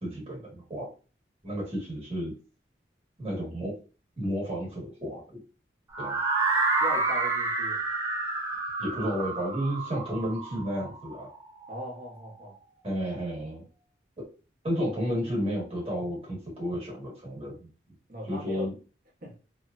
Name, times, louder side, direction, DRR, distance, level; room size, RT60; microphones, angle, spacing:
voice 1, 0.0-0.9 1.4-2.3 3.2-3.7 4.2-5.4 6.0-6.2 8.8-11.3 12.8-13.6 14.2-14.3 14.6-17.7 18.2-18.8, equal, 30° right, 1.3 m, -32 dB
sound 1, 5.9-11.9, right 3 dB, 15° right, 0.4 m, -29 dB
voice 2, 6.8-7.8 11.7-12.5 18.1-18.7 19.2-19.4, equal, 50° right, 0.9 m, -39 dB
3.0 x 2.0 x 2.4 m
head